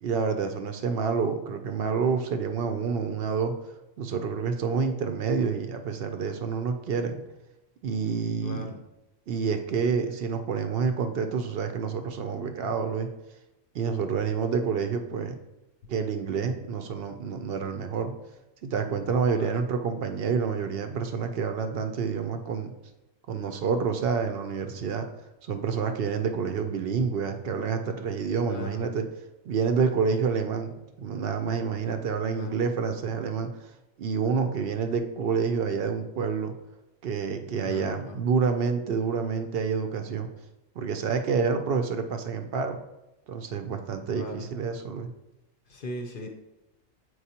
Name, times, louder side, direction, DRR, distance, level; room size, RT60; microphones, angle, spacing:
voice 1, 0.0-3.5 4.0-7.2 7.8-8.7 9.3-13.1 13.7-15.3 15.9-18.1 18.6-22.7 23.3-25.1 25.4-29.0 29.4-30.7 31.0-33.7 34.0-36.5 37.0-40.3 40.8-42.8 43.3-45.1, right 5 dB, 65° right, 7 dB, 0.6 m, -28 dB
voice 2, 8.4-8.8 19.3-19.6 28.5-28.9 32.3-32.6 37.6-38.2 44.1-44.5 45.7-46.3, left 2 dB, 55° left, 5 dB, 0.6 m, -38 dB
8.0 x 4.6 x 2.8 m, 0.96 s
omnidirectional pair, 1.4 m